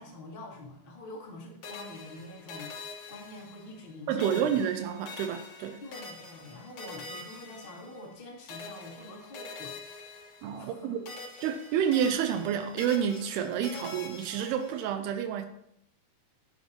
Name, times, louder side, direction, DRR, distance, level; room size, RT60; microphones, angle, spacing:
voice 1, 0.0-4.5 5.8-9.8 10.6-10.9, left 2 dB, 25° left, -3 dB, 1.3 m, -46 dB
sound 1, 1.6-3.9 4.2-8.2 8.5-10.8 11.1-14.9, left 4 dB, 60° left, 1.4 m, -45 dB
voice 2, 4.1-5.8 10.4-11.0 11.4-15.5, right 8 dB, 90° right, 7 dB, 2.7 m, -29 dB
12.5 x 8.5 x 2.9 m, 0.74 s
omnidirectional pair, 4.6 m